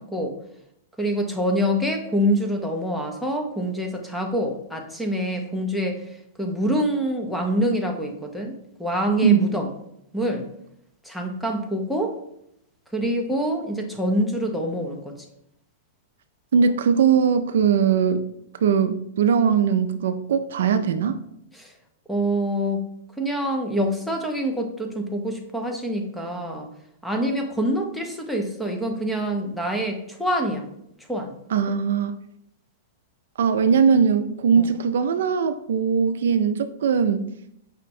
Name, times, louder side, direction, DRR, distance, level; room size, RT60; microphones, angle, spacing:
voice 1, 1.0-9.7 10.1-10.5 11.0-12.1 12.9-15.1 21.5-21.7 22.1-22.8 23.2-26.7 27.0-30.7 31.1-31.3 34.6-34.7, equal, ahead, 0.4 m, -26 dB
voice 2, 16.5-18.3 18.6-21.2 31.5-32.2 33.4-37.3, right 6 dB, 70° right, 0.3 m, -20 dB
5.4 x 2.1 x 4.2 m
supercardioid pair, 170°, 0 cm